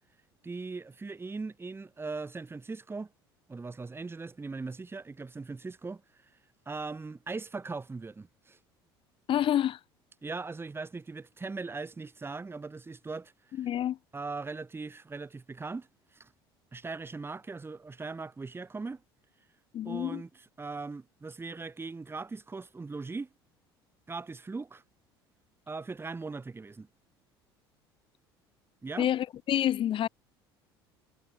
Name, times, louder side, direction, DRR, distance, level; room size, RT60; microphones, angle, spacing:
voice 1, 0.4-3.1 3.5-6.3 6.7-8.6 10.2-13.7 14.1-16.3 16.7-19.0 19.8-23.3 24.1-24.8 25.7-26.9 28.8-29.1, right 3 dB, 20° right, 2.1 m, -39 dB
voice 2, 9.3-9.8 13.6-14.0 19.7-20.2 29.0-30.1, left 11 dB, 45° left, 0.8 m, -28 dB
hypercardioid pair, 65°, 13 cm